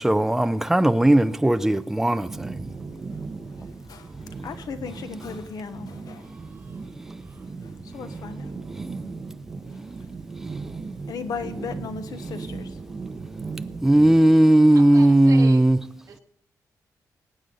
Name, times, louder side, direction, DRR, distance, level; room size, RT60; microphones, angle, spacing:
voice 1, 0.0-2.5 13.8-15.8, right 1 dB, 5° right, 0.5 m, -17 dB
sound 1, 2.2-14.1, right 4 dB, 35° right, 1.3 m, -37 dB
voice 2, 3.5-4.1 4.4-6.3 7.5-8.5 11.1-12.8, left 5 dB, 80° left, 1.1 m, -37 dB
voice 3, 14.7-15.6 16.1-16.2, right 6 dB, 65° right, 1.7 m, -39 dB
21.5 x 9.4 x 3.9 m
wide cardioid pair, 165°, 6 cm